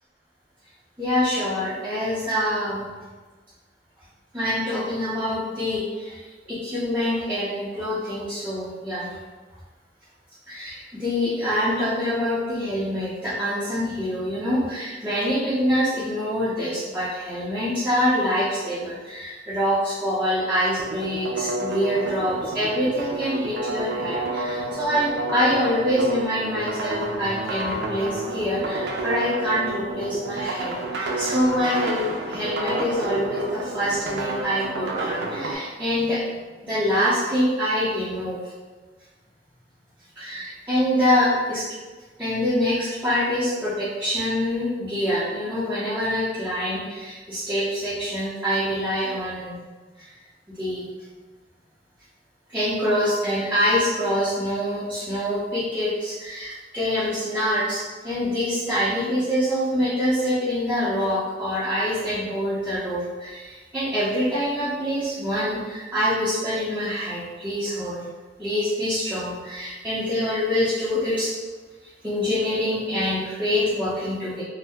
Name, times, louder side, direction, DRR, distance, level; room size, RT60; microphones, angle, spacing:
voice 1, 1.0-2.8 4.3-6.2 6.5-9.1 10.5-36.2 36.6-38.4 40.2-41.7 42.2-49.6 50.0-50.1 50.6-50.9 52.5-68.1 68.4-71.3 72.0-74.4, equal, 10° right, -12 dB, 0.6 m, -25 dB
sound 1, 20.8-35.5, right 2 dB, 80° right, 0.4 m, -30 dB
2.7 x 2.0 x 3.4 m, 1.3 s
head